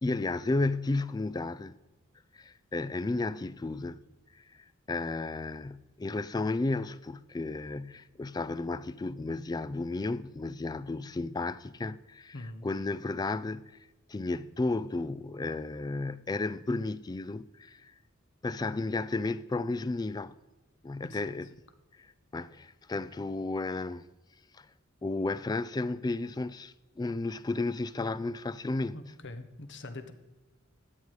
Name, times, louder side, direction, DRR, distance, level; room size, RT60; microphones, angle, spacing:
voice 1, 0.0-1.7 2.3-4.0 4.3-13.8 14.1-17.9 18.4-20.3 20.8-21.5 22.0-24.1 24.5-24.7 25.0-29.0, left 3 dB, 20° left, 0.3 m, -33 dB
voice 2, 12.3-12.7 21.1-21.2 28.9-30.1, left 2 dB, 60° left, 1.2 m, -43 dB
13.0 x 9.3 x 4.9 m
head